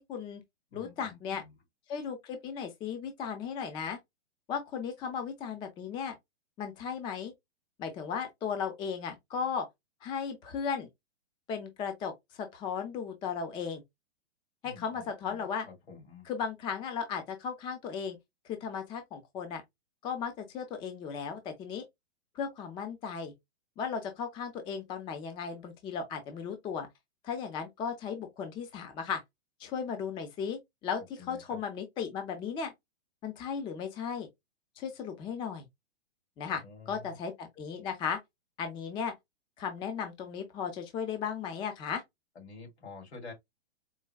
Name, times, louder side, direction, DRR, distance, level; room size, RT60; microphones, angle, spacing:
voice 1, 0.1-0.4 0.7-1.4 1.9-4.0 4.5-6.1 6.6-7.3 7.8-9.7 10.0-10.9 11.5-12.1 12.4-13.8 14.6-15.7 16.3-18.2 18.5-19.6 20.0-21.8 22.4-23.3 23.8-26.9 27.2-29.2 29.6-32.7 33.2-34.3 34.8-35.6 36.4-38.2 38.6-39.1 39.6-42.0, left 6 dB, 15° left, 0.4 m, -36 dB
voice 2, 0.7-1.6 14.6-16.3 31.2-31.6 36.5-37.2 42.3-43.3, left 4 dB, 80° left, 2.6 m, -49 dB
4.5 x 2.1 x 2.3 m
hypercardioid pair, 130°, 33 cm